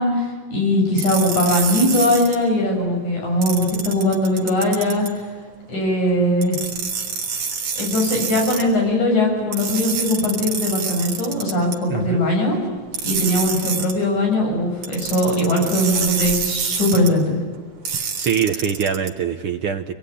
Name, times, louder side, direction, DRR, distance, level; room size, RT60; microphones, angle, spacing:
voice 1, 0.0-5.1 5.7-6.6 7.8-12.6 13.0-17.4, left 1 dB, 60° left, 1 dB, 8.3 m, -20 dB
sound 1, 1.0-2.3 3.4-5.1 6.4-8.6 9.5-11.8 12.9-13.9 14.8-17.1 17.8-19.1, right 6 dB, 90° right, 4.4 m, -26 dB
voice 2, 11.9-12.2 18.0-19.9, right 7 dB, 70° right, 6 dB, 1.3 m, -23 dB
26.0 x 21.5 x 9.9 m, 1.5 s
omnidirectional pair, 3.7 m